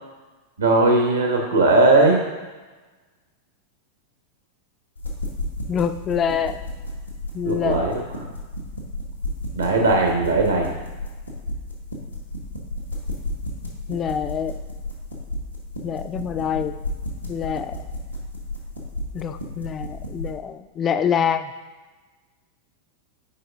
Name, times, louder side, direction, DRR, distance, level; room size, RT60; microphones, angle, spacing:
voice 1, 0.6-2.2 7.4-8.0 9.5-10.7, right 2 dB, 75° right, 1 dB, 1.3 m, -18 dB
sound 1, 4.9-20.3, left 1 dB, 90° left, 1.2 m, -33 dB
voice 2, 5.7-6.6 7.3-8.0 13.9-14.5 15.8-16.8 17.3-17.8 19.1-21.5, left 7 dB, 25° left, 10 dB, 0.4 m, -25 dB
11.0 x 4.9 x 2.5 m, 1.3 s
figure-of-eight pair, 90°, 0 cm